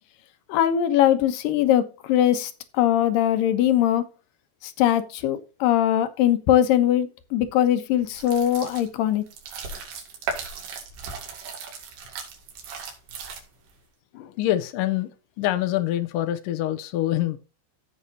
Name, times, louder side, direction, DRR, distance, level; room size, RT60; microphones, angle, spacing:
voice 1, 0.5-4.0 4.6-9.2, left 11 dB, 70° left, 2.3 m, -21 dB
sound 1, 8.1-13.7, right 5 dB, 75° right, 4.4 m, -37 dB
voice 2, 14.1-15.1 15.4-17.4, left 13 dB, 90° left, 1.9 m, -25 dB
16.0 x 5.6 x 2.8 m
omnidirectional pair, 4.9 m